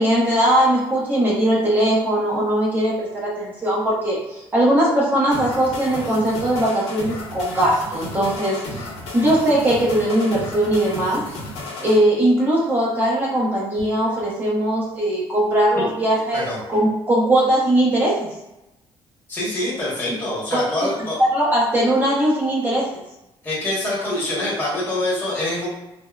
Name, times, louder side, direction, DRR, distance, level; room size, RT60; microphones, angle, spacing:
voice 1, 0.0-11.2 11.8-18.3 20.5-20.6 21.3-22.9, right 1 dB, 15° right, -5 dB, 0.8 m, -20 dB
sound 1, 5.3-12.0, left 2 dB, 80° left, 0.8 m, -33 dB
voice 2, 19.3-21.2 23.4-25.7, left 1 dB, 15° left, -7 dB, 1.1 m, -25 dB
3.5 x 2.1 x 2.3 m, 0.93 s
cardioid pair, 165°, 11 cm